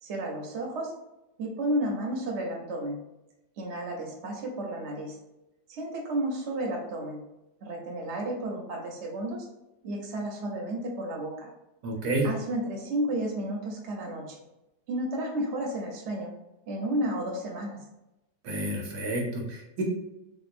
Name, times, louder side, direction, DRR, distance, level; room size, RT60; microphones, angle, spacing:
voice 1, 0.0-0.9 1.4-3.0 3.6-5.2 5.7-7.2 7.6-9.5 9.8-11.5 12.2-14.4 14.9-16.3 16.7-17.8, right 1 dB, 50° right, 0 dB, 0.9 m, -32 dB
voice 2, 11.8-12.3 18.4-19.8, right 1 dB, 75° right, 0 dB, 1.2 m, -30 dB
3.4 x 2.9 x 2.5 m, 0.93 s
omnidirectional pair, 1.8 m